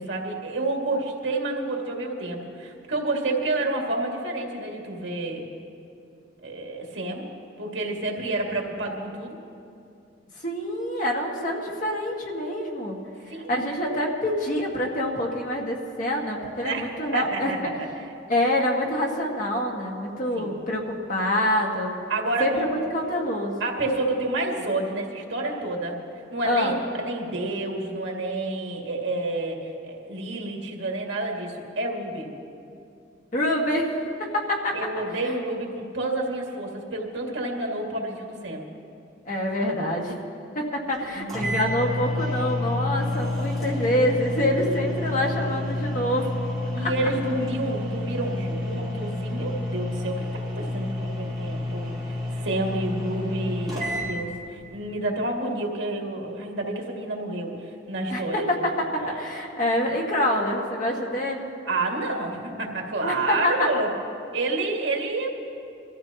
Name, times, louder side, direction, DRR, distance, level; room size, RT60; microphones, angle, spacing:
voice 1, 0.0-5.4 6.4-7.3 7.6-9.4 13.3-13.5 16.6-18.1 20.4-20.5 22.1-22.7 23.6-26.0 26.3-32.3 34.7-38.7 41.1-41.5 46.7-50.3 50.5-52.2 52.4-58.5 59.0-59.3 61.7-63.9 64.3-65.3, right 2 dB, 75° right, 0 dB, 2.1 m, -29 dB
voice 2, 10.4-13.0 13.5-17.5 18.3-21.9 22.4-23.6 26.4-26.7 33.3-33.9 34.3-34.8 39.3-40.2 40.6-46.3 46.8-46.9 58.1-61.5 63.0-63.5, left 1 dB, 45° left, -1 dB, 1.8 m, -26 dB
sound 1, 40.9-41.0 41.3-54.1, left 1 dB, ahead, 4.2 m, -29 dB
23.5 x 14.0 x 2.9 m, 2.5 s
head